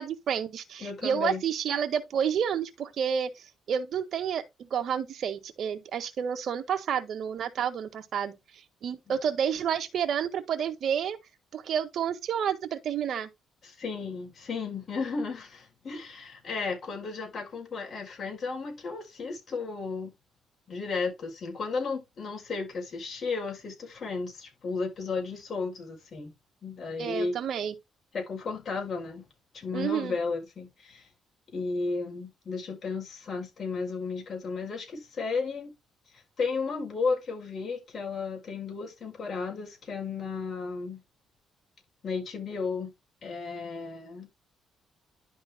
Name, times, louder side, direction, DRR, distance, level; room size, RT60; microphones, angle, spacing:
voice 1, 0.0-11.2 11.5-13.3 27.0-27.7 29.7-30.2, right 8 dB, 65° right, 1.6 m, -30 dB
voice 2, 0.8-1.4 13.6-20.1 20.7-26.3 26.6-27.3 28.1-29.2 29.5-31.1 31.5-35.7 36.1-41.0 42.0-42.9 43.2-44.3, left 4 dB, 50° left, 4.8 m, -34 dB
11.0 x 3.8 x 3.7 m
cardioid pair, 90°, 0 cm